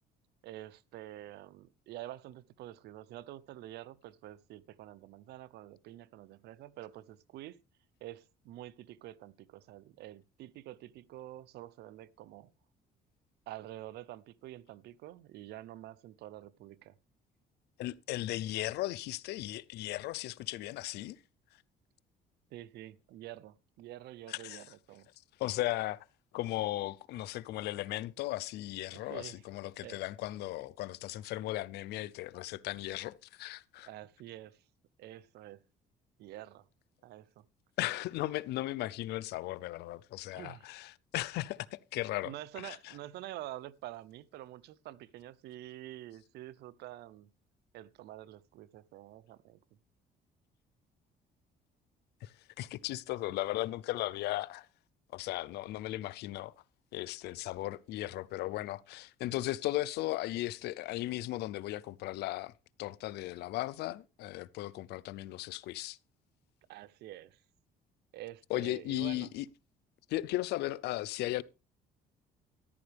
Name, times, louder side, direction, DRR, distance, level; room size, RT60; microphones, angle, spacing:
voice 1, 0.4-7.6 8.0-12.5 13.5-16.9 22.5-25.1 28.9-29.4 29.8-30.0 33.9-34.6 35.0-35.6 36.2-36.7 37.0-37.4 40.3-40.7 42.2-47.3 47.7-49.6 66.7-67.4 68.1-69.3, right 14 dB, 75° right, 0.7 m, -47 dB
voice 2, 17.8-21.2 24.3-24.6 25.4-26.0 26.3-33.9 37.8-42.9 52.2-54.7 55.1-56.5 56.9-62.5 62.8-66.0 68.5-69.5 70.1-71.4, left 16 dB, 80° left, 0.6 m, -36 dB
13.5 x 11.5 x 3.4 m
cardioid pair, 110°, 17 cm